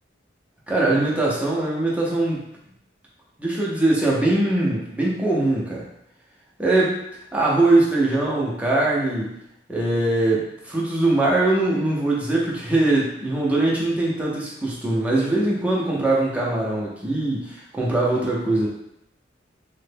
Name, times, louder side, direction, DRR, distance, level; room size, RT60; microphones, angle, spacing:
voice 1, 0.7-2.4 3.4-5.8 6.6-7.0 7.3-9.3 9.7-18.7, right 2 dB, 5° right, -5 dB, 0.6 m, -21 dB
3.1 x 2.2 x 3.3 m, 0.81 s
head